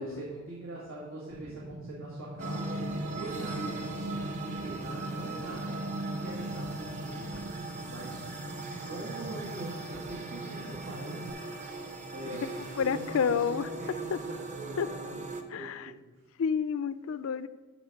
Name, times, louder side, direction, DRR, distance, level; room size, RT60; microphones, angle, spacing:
voice 1, 0.0-8.2 8.8-11.4 12.1-15.2 15.5-15.9, right 2 dB, 90° right, 1.8 m, -43 dB
sound 1, 1.3-11.3, right 1 dB, 70° right, 0.8 m, -44 dB
sound 2, 2.4-15.4, right 2 dB, 35° right, 0.7 m, -38 dB
voice 2, 12.8-13.7 14.1-14.2 14.8-14.9 15.5-15.9 16.4-17.5, left 6 dB, 75° left, 0.4 m, -29 dB
12.0 x 4.1 x 5.2 m
head